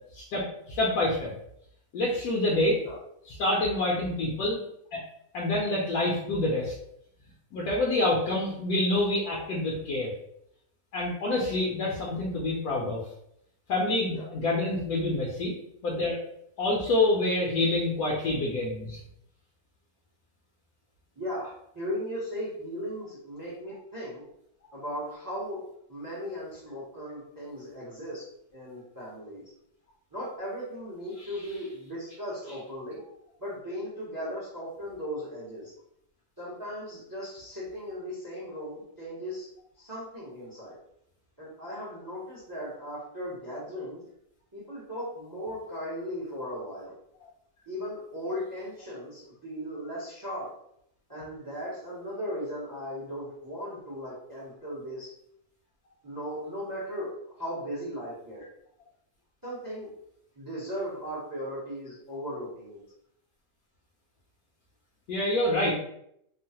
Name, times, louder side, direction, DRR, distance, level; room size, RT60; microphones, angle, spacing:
voice 1, 0.1-1.3 1.9-2.8 3.3-4.6 4.9-5.0 5.3-6.7 7.5-10.1 10.9-13.0 13.7-15.5 15.8-16.2 16.6-19.0 31.2-31.3 65.1-65.7, left 2 dB, 70° left, -4 dB, 1.0 m, -27 dB
voice 2, 21.2-24.2 24.7-25.6 25.9-28.3 28.5-29.4 30.1-33.0 33.4-35.7 36.4-39.5 39.8-40.8 41.4-44.0 44.5-46.9 47.7-50.5 51.1-55.1 56.0-57.1 57.4-58.4 59.4-59.9 60.4-62.8, equal, 35° right, -7 dB, 0.3 m, -37 dB
3.0 x 2.0 x 2.7 m, 0.74 s
omnidirectional pair, 1.8 m